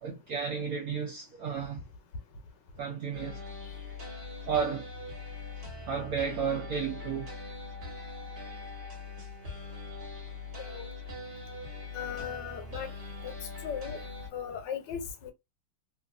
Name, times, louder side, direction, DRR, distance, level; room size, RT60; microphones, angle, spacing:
voice 1, 0.0-1.9 2.8-3.4 3.9-4.0 4.4-4.9 5.5-7.3, right 6 dB, 70° right, 0.9 m, -33 dB
sound 1, 3.1-14.3, left 3 dB, 45° right, 1.2 m, -42 dB
voice 2, 11.9-12.9 13.2-13.3 13.6-14.0 14.3-15.3, left 8 dB, 75° left, 1.3 m, -37 dB
3.1 x 2.5 x 2.4 m
omnidirectional pair, 2.0 m